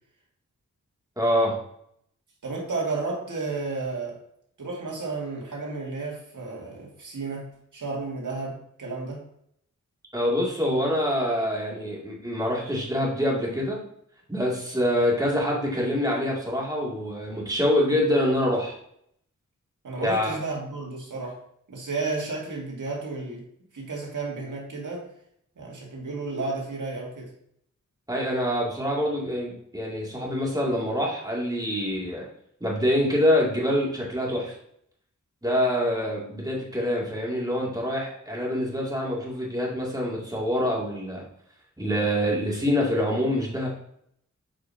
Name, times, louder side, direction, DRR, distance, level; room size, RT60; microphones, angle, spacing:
voice 1, 1.2-1.6 10.1-13.8 14.3-18.7 20.0-20.4 28.1-32.3 32.6-34.5 35.4-41.2 41.8-43.7, equal, 10° right, -4 dB, 2.3 m, -25 dB
voice 2, 2.4-4.2 4.6-9.2 19.8-21.4 21.7-23.4 23.7-25.1 25.6-27.3, right 3 dB, 75° right, -2 dB, 2.2 m, -32 dB
7.4 x 4.8 x 2.7 m, 0.69 s
wide cardioid pair, 65°, 31 cm